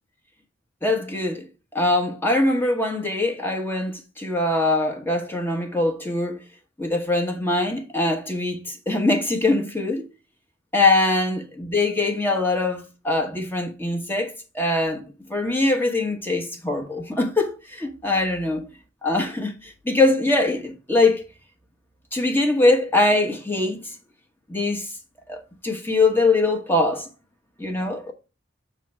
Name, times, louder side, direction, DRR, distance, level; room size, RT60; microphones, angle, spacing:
voice 1, 0.8-1.5 1.7-6.4 6.8-10.1 10.7-15.0 15.3-18.6 19.0-21.2 22.1-24.0 24.5-24.9 25.3-27.1 27.6-28.1, left 2 dB, 10° left, 1.1 m, -22 dB
7.4 x 3.2 x 5.7 m
head